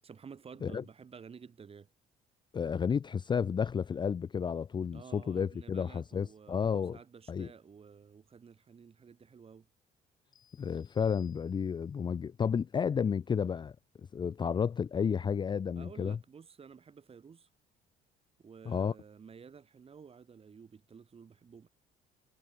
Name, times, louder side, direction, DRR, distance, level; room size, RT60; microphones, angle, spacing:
voice 1, 0.0-1.9 4.9-9.7 15.7-17.5 18.4-21.7, right 6 dB, 35° right, 6.0 m, -52 dB
voice 2, 2.5-7.0 7.3-7.5 10.6-13.8 14.1-16.2 18.7-18.9, left 7 dB, 25° left, 0.5 m, -32 dB
sound 1, 10.3-12.0, left 9 dB, 55° left, 7.5 m, -67 dB
cardioid pair, 110°, 17 cm